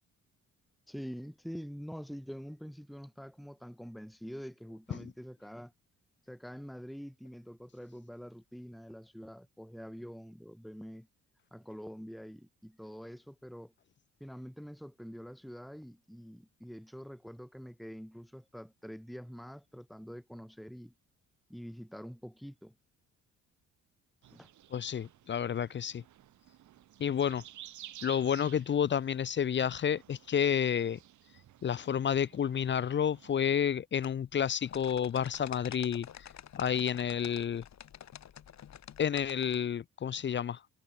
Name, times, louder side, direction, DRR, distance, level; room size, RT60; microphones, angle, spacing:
voice 1, 0.9-5.7 6.3-11.1 11.5-13.7 14.2-20.9 21.5-22.7 24.3-24.5, equal, ahead, 2.4 m, -46 dB
sound 1, 24.2-33.5, right 12 dB, 75° right, 3.5 m, -54 dB
voice 2, 24.7-26.0 27.0-27.4 28.0-31.0 31.6-36.3 36.5-37.6 39.0-40.7, left 8 dB, 40° left, 0.6 m, -30 dB
sound 2, 34.0-39.6, left 9 dB, 65° left, 7.6 m, -49 dB
cardioid pair, 90°, 30 cm